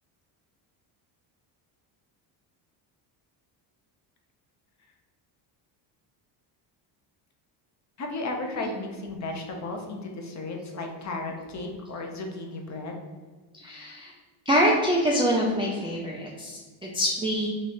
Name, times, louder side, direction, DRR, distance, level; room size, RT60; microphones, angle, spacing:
voice 1, 8.0-13.0, left 2 dB, 35° left, 2 dB, 0.7 m, -34 dB
voice 2, 13.5-14.1 14.5-17.5, equal, 10° right, -4 dB, 0.3 m, -25 dB
3.2 x 2.4 x 4.1 m, 1.4 s
cardioid pair, 100°, 48 cm